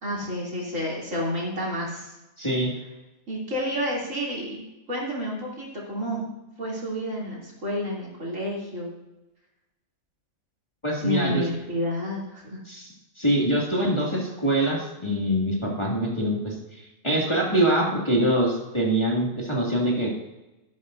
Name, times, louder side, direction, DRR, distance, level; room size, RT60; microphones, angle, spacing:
voice 1, 0.0-2.1 3.3-6.2 6.6-8.9 11.0-12.6, equal, 60° right, -5 dB, 3.6 m, -30 dB
voice 2, 2.4-2.7 10.8-11.4 12.7-12.9 13.2-20.2, right 1 dB, 20° left, -4 dB, 2.5 m, -24 dB
12.5 x 12.0 x 2.7 m, 0.99 s
omnidirectional pair, 1.5 m